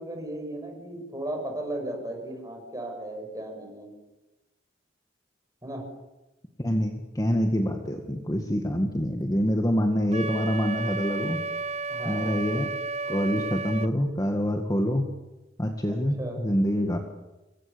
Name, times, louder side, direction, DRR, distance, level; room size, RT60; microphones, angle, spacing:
voice 1, 0.0-3.9 5.6-5.9 11.9-12.3 15.9-16.4, right 1 dB, 20° right, 3 dB, 6.8 m, -36 dB
voice 2, 6.6-11.4 12.1-12.7 13.1-15.1 15.6-17.0, equal, 20° left, 4 dB, 1.9 m, -26 dB
Wind instrument woodwind instrument, 10.1-13.9, right 3 dB, 35° right, 0.8 m, -32 dB
27.5 x 23.5 x 7.0 m, 1.0 s
head